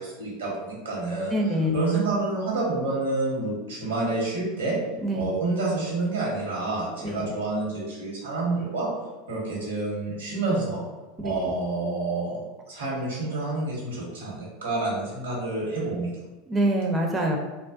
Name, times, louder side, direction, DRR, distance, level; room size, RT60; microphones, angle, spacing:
voice 1, 0.0-1.3 1.7-4.8 5.1-8.9 9.3-10.8 11.2-12.4 12.7-16.1, right 2 dB, 90° right, -4 dB, 1.0 m, -28 dB
voice 2, 1.3-1.8 5.0-5.3 7.0-7.3 11.2-11.5 16.5-17.4, right 1 dB, 20° right, 0 dB, 0.4 m, -25 dB
2.3 x 2.1 x 2.5 m, 1.2 s
hypercardioid pair, 95°, 0 cm